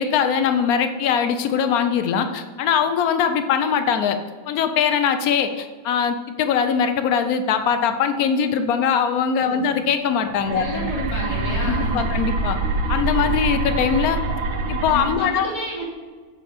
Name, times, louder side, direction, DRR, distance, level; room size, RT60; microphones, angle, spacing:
voice 1, 0.0-4.2 4.5-10.9 11.7-12.6 12.9-14.2 14.7-15.6, left 7 dB, 70° left, 8 dB, 0.8 m, -21 dB
voice 2, 9.5-9.8 10.6-12.1 14.9-15.9, left 2 dB, 35° left, -4 dB, 2.6 m, -30 dB
sound 1, 10.2-15.2, right 3 dB, 80° right, 1.7 m, -25 dB
7.8 x 4.6 x 5.0 m, 1.5 s
omnidirectional pair, 2.2 m